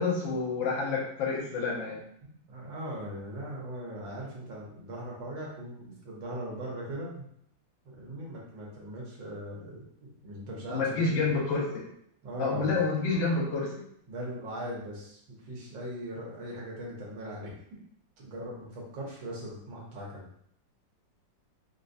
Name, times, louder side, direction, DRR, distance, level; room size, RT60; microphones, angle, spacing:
voice 1, 0.0-2.0 10.7-11.8 12.4-13.7, left 4 dB, 80° left, -3 dB, 1.6 m, -28 dB
voice 2, 2.2-7.3 7.9-11.3 12.2-12.7 14.1-17.8 18.2-20.3, right 1 dB, 80° right, -3 dB, 1.7 m, -40 dB
4.3 x 2.2 x 2.6 m, 0.68 s
omnidirectional pair, 2.1 m